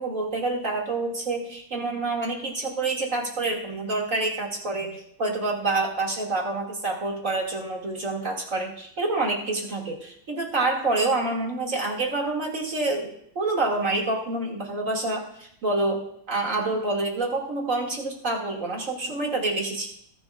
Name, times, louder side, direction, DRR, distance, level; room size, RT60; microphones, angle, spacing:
voice 1, 0.0-19.9, right 2 dB, 40° right, -1 dB, 2.7 m, -27 dB
21.0 x 10.5 x 2.5 m, 0.68 s
omnidirectional pair, 2.2 m